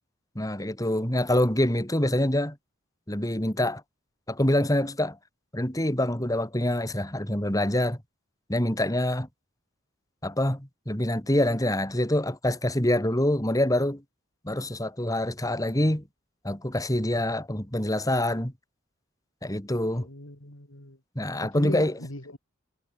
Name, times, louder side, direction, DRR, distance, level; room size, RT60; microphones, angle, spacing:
voice 1, 0.3-2.6 3.1-3.8 4.3-5.2 5.5-8.0 8.5-9.3 10.2-14.0 14.4-16.0 16.4-18.5 19.4-20.1 21.1-22.0, left 1 dB, 15° left, 3.1 m, -25 dB
voice 2, 19.9-21.0 21.5-22.4, left 1 dB, 75° left, 4.6 m, -38 dB
head